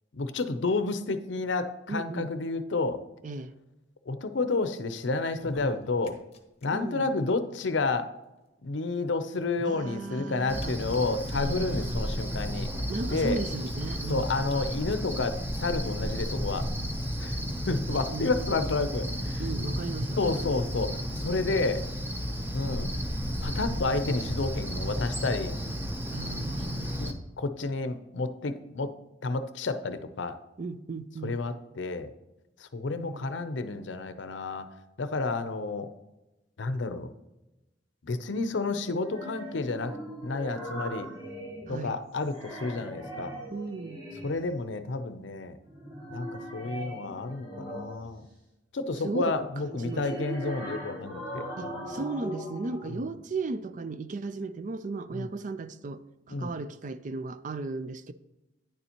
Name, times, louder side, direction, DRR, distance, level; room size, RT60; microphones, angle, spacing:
voice 1, 0.1-3.0 4.1-6.2 6.6-8.1 8.6-12.7 13.1-13.4 14.1-16.7 17.2-17.4 17.7-19.4 20.2-21.9 22.5-23.0 23.4-25.6 27.0-28.9 29.2-30.4 31.2-32.1 32.6-34.7 35.0-35.9 36.6-37.1 38.0-40.0 40.2-41.1 41.7-43.3 44.2-45.6 46.1-48.2 48.7-52.0 52.9-53.1 55.1-55.3 56.3-56.5, left 3 dB, 80° left, 0.6 m, -30 dB
voice 2, 1.9-2.3 3.2-3.5 6.7-7.2 9.6-10.8 11.3-12.1 12.9-14.3 16.0-16.2 18.1-18.3 19.4-20.5 26.1-27.0 30.6-31.4 33.0-33.3 41.7-42.0 43.5-44.0 49.0-49.4 49.6-50.1 51.6-58.1, right 3 dB, 45° right, 0.4 m, -36 dB
sound 1, 5.3-6.7 6.9-7.0 7.2-7.3 8.4-8.5 9.3-11.6 12.2-12.3 12.7-12.8 13.2-14.1 14.5-14.6 14.9-15.0 15.8-15.9, left 1 dB, 35° left, 0.8 m, -45 dB
Cricket, 10.5-27.1, equal, 10° right, 0.7 m, -33 dB
sound 2, 39.0-41.9 42.2-44.5 45.6-48.2 49.6-52.9, equal, 30° right, 2.7 m, -40 dB
9.8 x 6.9 x 2.9 m
head